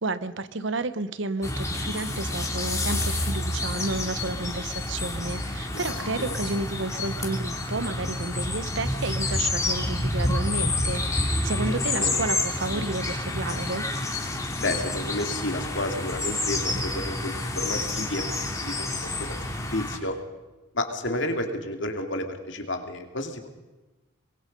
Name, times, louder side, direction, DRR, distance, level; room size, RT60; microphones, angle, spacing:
voice 1, 0.0-13.8, right 2 dB, 65° right, 13 dB, 1.0 m, -31 dB
sound 1, 1.4-20.0, left 2 dB, 15° left, 2.8 m, -29 dB
voice 2, 5.7-6.4 12.0-12.1 14.6-19.4 19.7-20.2 20.7-23.5, left 1 dB, 65° left, 5 dB, 2.7 m, -31 dB
24.5 x 22.0 x 5.4 m, 1.1 s
head